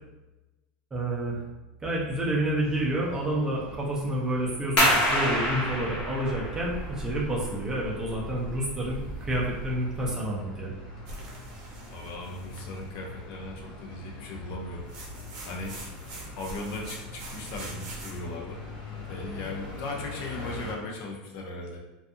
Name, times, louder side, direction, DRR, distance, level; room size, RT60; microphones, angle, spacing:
voice 1, 0.9-1.4 1.8-10.7, right 1 dB, 15° right, -4 dB, 0.5 m, -29 dB
sound 1, 2.6-20.7, left 3 dB, 70° left, 0.9 m, -44 dB
sound 2, 4.8-10.1, equal, 30° left, 0.9 m, -28 dB
sound 3, 11.1-12.9 14.9-18.2, right 2 dB, 55° right, 0.7 m, -44 dB
voice 2, 11.9-14.9 15.4-15.8 16.4-18.6 19.1-21.8, left 2 dB, 50° left, 0 dB, 0.5 m, -38 dB
2.5 x 2.3 x 2.6 m, 1.1 s
supercardioid pair, 160°, 4 cm